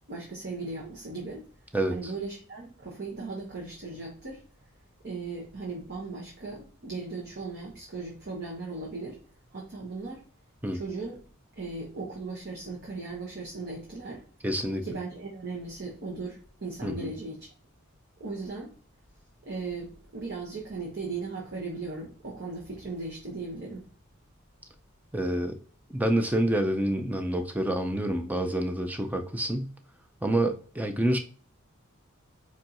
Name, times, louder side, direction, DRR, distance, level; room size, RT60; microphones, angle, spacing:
voice 1, 0.1-1.4 1.9-4.4 5.0-9.2 9.5-10.2 10.7-11.2 11.6-14.2 14.8-17.5 18.2-18.7 19.4-23.9, right 3 dB, 50° right, 1.1 m, -37 dB
voice 2, 1.7-2.1 10.6-10.8 14.4-14.8 16.8-17.1 25.1-25.6 25.9-29.7 30.2-31.2, right 1 dB, 10° right, 0.5 m, -27 dB
4.6 x 4.4 x 2.5 m
head